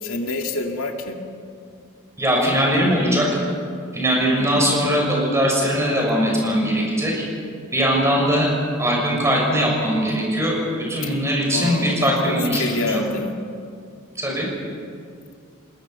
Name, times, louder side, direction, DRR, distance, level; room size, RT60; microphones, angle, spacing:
voice 1, 0.0-1.2 4.4-4.6 11.0-11.1 11.5-13.3, left 2 dB, 80° left, 3 dB, 2.2 m, -27 dB
voice 2, 2.2-3.3 3.9-7.2 7.7-10.6 10.9-13.0 14.2-14.5, equal, 15° right, -2 dB, 6.4 m, -20 dB
25.5 x 21.0 x 5.8 m, 2.3 s
head